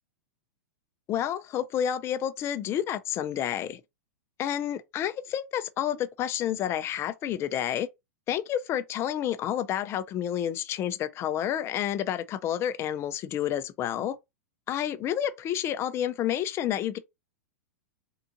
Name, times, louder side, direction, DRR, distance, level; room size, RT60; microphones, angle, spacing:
voice 1, 1.1-3.8 4.4-7.9 8.3-14.2 14.7-17.0, left 10 dB, 30° left, 0.4 m, -29 dB
3.6 x 2.5 x 2.8 m
hypercardioid pair, 120°, 9 cm